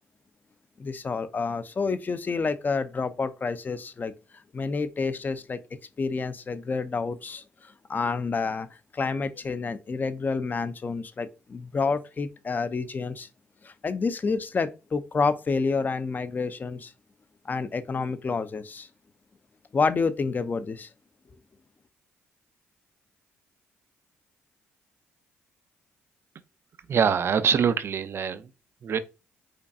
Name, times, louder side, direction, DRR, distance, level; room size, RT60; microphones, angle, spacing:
voice 1, 0.8-4.1 4.5-5.6 6.0-8.7 8.9-13.3 13.6-16.9 17.4-18.9 19.7-20.9, left 4 dB, 35° left, 0.5 m, -29 dB
voice 2, 26.9-28.5 28.8-29.0, right 7 dB, 50° right, 0.4 m, -24 dB
5.1 x 2.3 x 2.6 m
supercardioid pair, 65°, 5 cm